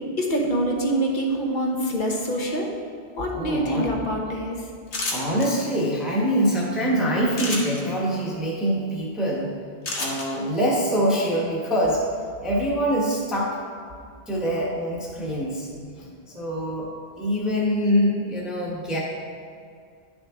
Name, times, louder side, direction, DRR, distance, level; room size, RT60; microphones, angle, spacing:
voice 1, 0.2-2.7 3.2-4.6 16.0-16.1, right 1 dB, 50° left, 0 dB, 1.2 m, -25 dB
voice 2, 3.3-3.9 5.1-9.5 10.0-12.0 12.4-13.6 14.3-15.7 16.3-16.9 17.2-19.0, equal, ahead, -5 dB, 1.2 m, -24 dB
sound 1, 4.9-5.5 7.3-7.8 9.8-10.3, left 2 dB, 85° left, 1.5 m, -28 dB
10.5 x 6.2 x 3.7 m, 2.2 s
omnidirectional pair, 1.1 m